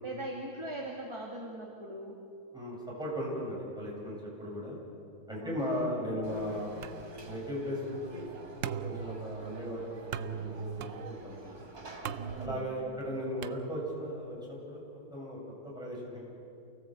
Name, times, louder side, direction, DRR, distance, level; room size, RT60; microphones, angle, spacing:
voice 1, 0.0-2.2 5.4-5.9 12.1-13.1, right 1 dB, 20° right, -1 dB, 2.2 m, -41 dB
voice 2, 2.5-4.8 5.3-6.8 7.2-9.8 10.2-11.6 12.4-15.4 15.6-16.3, equal, 5° right, -5 dB, 7.8 m, -37 dB
Conversation / Crowd, 6.2-12.5, right 1 dB, 85° right, 3.6 m, -48 dB
sound 1, 6.8-14.2, right 8 dB, 60° right, 1.0 m, -42 dB
29.0 x 17.5 x 8.1 m, 2.5 s
omnidirectional pair, 1.6 m